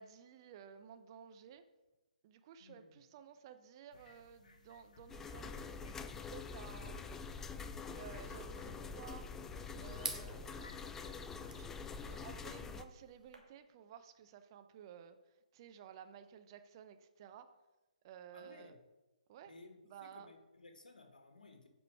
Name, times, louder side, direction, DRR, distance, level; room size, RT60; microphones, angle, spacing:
voice 1, 0.0-1.6 2.2-5.7 6.3-7.1 7.9-9.3 9.8-11.7 12.0-15.2 15.5-17.5 18.0-18.8 19.3-19.5 19.8-20.3, right 8 dB, 35° right, 9 dB, 0.6 m, -55 dB
sound 1, 3.9-11.9, left 3 dB, 60° left, 1.4 m, -59 dB
sound 2, 5.1-12.8, left 5 dB, 10° left, 0.3 m, -46 dB
sound 3, 8.3-13.4, right 2 dB, 85° right, 1.8 m, -50 dB
voice 2, 18.3-18.8 19.5-21.7, left 3 dB, 80° left, 5 dB, 1.5 m, -58 dB
8.3 x 5.0 x 4.7 m, 1.1 s
figure-of-eight pair, 140°, 4 cm